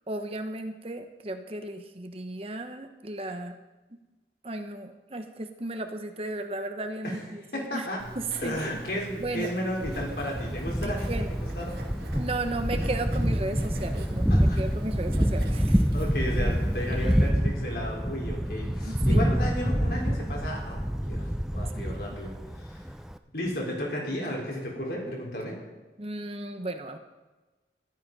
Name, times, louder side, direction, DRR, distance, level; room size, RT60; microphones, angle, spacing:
voice 1, 0.1-3.6 4.4-7.9 8.1-8.6 9.2-9.5 11.1-11.3 12.2-15.9 18.8-19.2 21.7-22.0 26.0-27.0, right 2 dB, 35° right, 7 dB, 0.9 m, -35 dB
voice 2, 7.5-8.0 8.4-11.8 14.3-14.6 15.9-22.8 23.3-25.6, equal, 65° left, -2 dB, 3.9 m, -34 dB
Writing, 8.0-17.3, right 1 dB, 65° right, 2.0 m, -41 dB
Thunder, 9.8-23.2, equal, 5° right, 0.4 m, -27 dB
13.5 x 11.5 x 5.4 m, 1.2 s
head